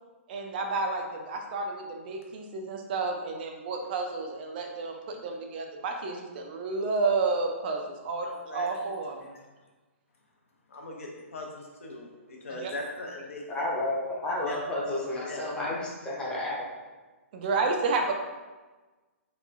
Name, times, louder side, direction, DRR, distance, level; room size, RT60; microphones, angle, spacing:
voice 1, 0.3-9.4 12.5-12.7 17.3-18.1, right 3 dB, 40° right, 3 dB, 0.3 m, -31 dB
voice 2, 8.2-8.7 10.7-13.7 14.5-14.6 14.9-15.0 15.2-15.5, left 2 dB, 70° left, 0 dB, 0.6 m, -40 dB
voice 3, 13.5-16.7, left 1 dB, 10° left, -4 dB, 0.6 m, -31 dB
2.9 x 2.2 x 2.4 m, 1.2 s
figure-of-eight pair, 125°, 8 cm